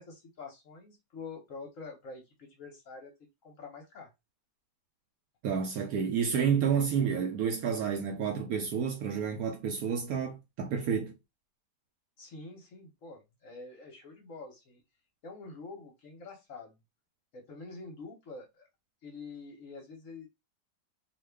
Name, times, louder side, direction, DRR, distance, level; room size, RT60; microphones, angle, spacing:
voice 1, 0.0-3.1 3.4-4.1 12.2-14.8 15.2-16.8 17.3-18.7 19.0-20.3, left 3 dB, 55° left, 1.0 m, -46 dB
voice 2, 5.4-11.1, right 7 dB, 70° right, 0.9 m, -30 dB
2.8 x 2.3 x 3.3 m
omnidirectional pair, 1.9 m